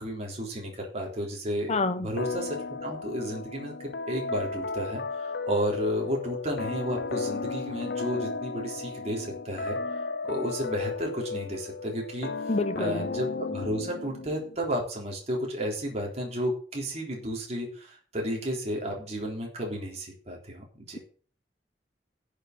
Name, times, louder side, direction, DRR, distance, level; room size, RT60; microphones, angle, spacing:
voice 1, 0.0-9.8 10.2-12.3 12.8-21.0, equal, 40° right, -1 dB, 3.7 m, -32 dB
voice 2, 1.7-2.1 12.5-13.1, left 2 dB, 40° left, 9 dB, 1.1 m, -27 dB
sound 1, 2.2-14.6, left 4 dB, 65° left, 0.8 m, -34 dB
11.0 x 6.9 x 8.1 m, 0.42 s
head